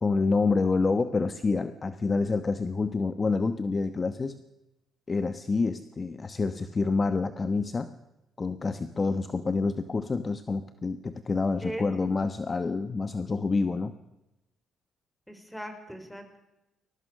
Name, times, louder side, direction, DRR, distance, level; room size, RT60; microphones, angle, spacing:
voice 1, 0.0-4.4 5.1-7.9 8.4-13.9, left 4 dB, 30° left, 11 dB, 1.1 m, -27 dB
voice 2, 11.6-12.1 15.3-16.4, equal, 5° left, 6 dB, 5.1 m, -39 dB
22.0 x 18.5 x 6.4 m, 0.94 s
cardioid pair, 90°, 0 cm